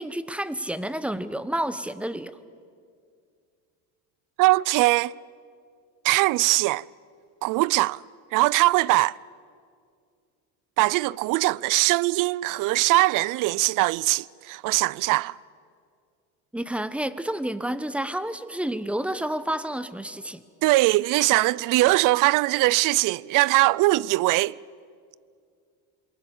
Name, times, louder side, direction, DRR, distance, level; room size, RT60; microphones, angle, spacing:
voice 1, 0.0-2.3 16.5-20.4, right 1 dB, 5° right, 0.9 m, -30 dB
voice 2, 4.4-5.1 6.0-6.8 7.4-8.0 8.3-9.2 10.8-15.4 20.6-24.6, right 20 dB, 55° right, 0.5 m, -21 dB
27.0 x 23.0 x 7.2 m
supercardioid pair, 115°, 39 cm